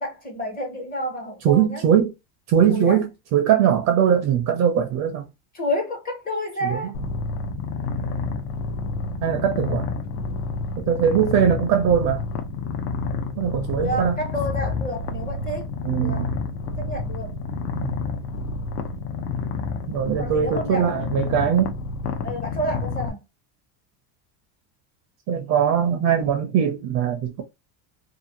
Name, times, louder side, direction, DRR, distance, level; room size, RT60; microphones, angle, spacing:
voice 1, 0.0-1.8 2.7-3.0 5.5-6.9 13.7-15.7 16.0-16.3 16.8-17.3 20.2-20.9 22.2-23.2, equal, 20° left, 0.5 m, -29 dB
voice 2, 1.4-2.1 2.5-5.3 6.6-6.9 9.2-9.8 10.8-12.2 13.4-14.2 15.8-16.3 17.8-17.9 19.9-21.7 25.3-27.4, right 9 dB, 40° right, 0.4 m, -21 dB
Purr, 6.9-23.1, left 4 dB, 70° left, 0.7 m, -29 dB
2.6 x 2.4 x 2.7 m
cardioid pair, 155°, 47 cm